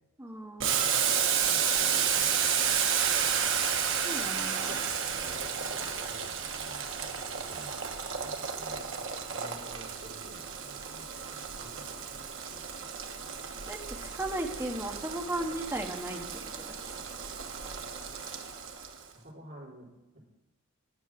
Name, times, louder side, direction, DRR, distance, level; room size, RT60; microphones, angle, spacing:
voice 1, 0.2-0.7 4.0-4.8 13.7-16.7, right 1 dB, 10° right, 1 dB, 1.3 m, -36 dB
Boiling, 0.6-19.0, right 7 dB, 65° right, 1.2 m, -32 dB
voice 2, 1.4-2.8 4.7-8.8 9.3-12.6 19.2-20.2, right 1 dB, 50° right, -4 dB, 3.7 m, -52 dB
11.0 x 8.4 x 6.0 m, 0.97 s
head